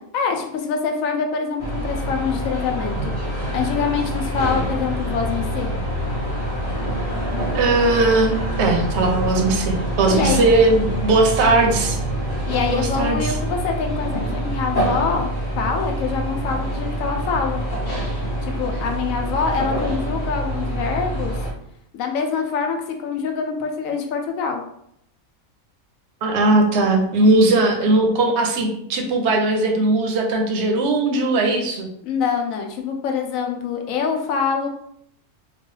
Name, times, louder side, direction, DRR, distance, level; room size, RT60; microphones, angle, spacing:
voice 1, 0.1-3.1 3.5-5.7 10.1-10.4 12.5-15.3 15.6-17.6 18.4-21.4 21.9-24.6 32.0-34.7, left 6 dB, 75° left, 3 dB, 1.0 m, -25 dB
sound 1, 1.6-21.5, right 1 dB, 45° left, 0.8 m, -26 dB
voice 2, 7.5-12.0 12.7-13.4 26.2-31.9, right 2 dB, 60° right, 3 dB, 0.8 m, -19 dB
3.0 x 2.3 x 3.0 m, 0.72 s
omnidirectional pair, 1.5 m